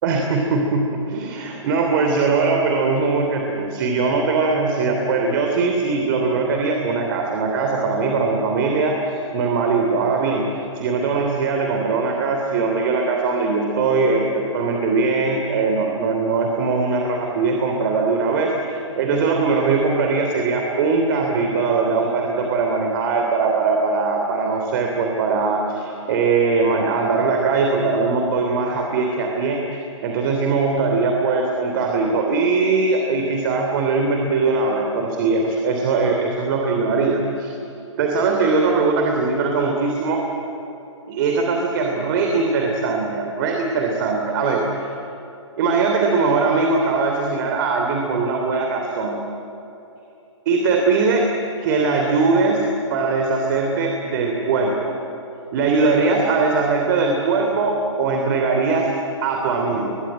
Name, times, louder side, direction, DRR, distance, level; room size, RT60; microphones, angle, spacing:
voice 1, 0.0-10.4 10.7-37.5 38.0-40.2 41.1-44.6 45.6-49.2 50.4-51.2 51.6-52.6 52.9-54.9 55.5-58.9 59.2-60.0, right 4 dB, 45° right, 2 dB, 3.1 m, -21 dB
22.0 x 22.0 x 9.0 m, 2.9 s
hypercardioid pair, 135°, 16 cm